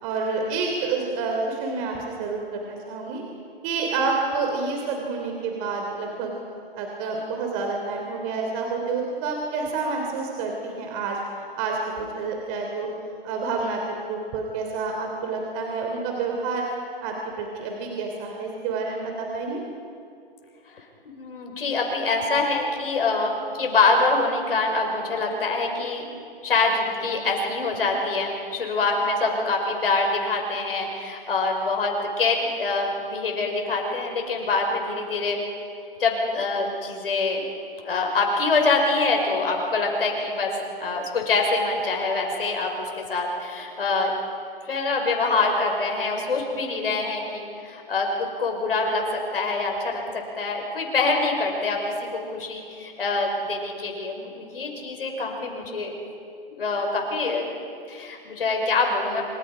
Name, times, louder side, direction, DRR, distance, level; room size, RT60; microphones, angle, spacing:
voice 1, 0.0-3.2 3.6-6.4 6.8-11.2 11.6-11.8 12.1-12.9 13.2-13.8 14.1-16.7 17.0-19.6, right 4 dB, 35° right, 1 dB, 3.3 m, -28 dB
voice 2, 20.7-26.0 26.4-35.4 36.0-37.5 37.8-44.1 44.7-55.9 56.5-57.5 57.9-59.2, left 3 dB, 70° left, 2 dB, 5.9 m, -25 dB
26.5 x 26.0 x 5.1 m, 2.5 s
figure-of-eight pair, 125°, 29 cm